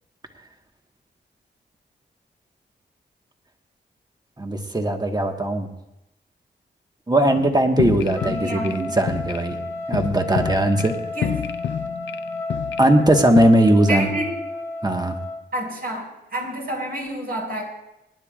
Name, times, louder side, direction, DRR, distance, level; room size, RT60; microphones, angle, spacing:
voice 1, 4.4-5.7 7.1-9.6 9.9-10.9 12.8-14.1 14.8-15.2, right 1 dB, 20° right, 4 dB, 1.6 m, -19 dB
sound 1, 7.3-13.5, left 9 dB, 85° left, 0.5 m, -30 dB
Trumpet, 8.1-15.4, left 2 dB, 10° left, 1.7 m, -32 dB
voice 2, 8.3-9.0 11.1-11.3 13.9-14.3 15.5-17.6, right 1 dB, 55° right, -2 dB, 5.8 m, -29 dB
26.0 x 10.5 x 2.5 m, 0.89 s
cardioid pair, 55°, 19 cm